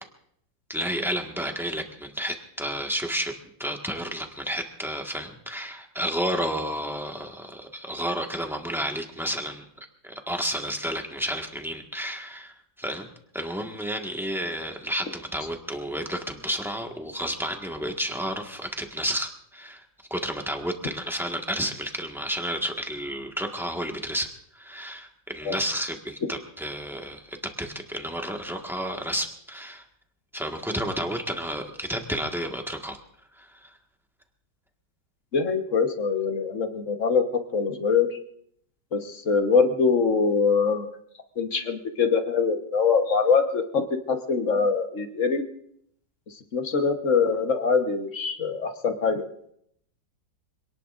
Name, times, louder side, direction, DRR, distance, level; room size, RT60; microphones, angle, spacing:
voice 1, 0.7-3.3 3.6-9.7 10.0-13.1 13.3-19.8 20.1-29.8 30.3-33.0 33.4-33.7, equal, ahead, 2 dB, 1.4 m, -31 dB
voice 2, 35.3-37.2 37.5-38.1 38.9-40.9 41.4-43.8 44.1-45.4 46.3-49.2, left 5 dB, 45° left, 5 dB, 1.4 m, -23 dB
26.0 x 18.5 x 2.6 m, 0.69 s
omnidirectional pair, 2.0 m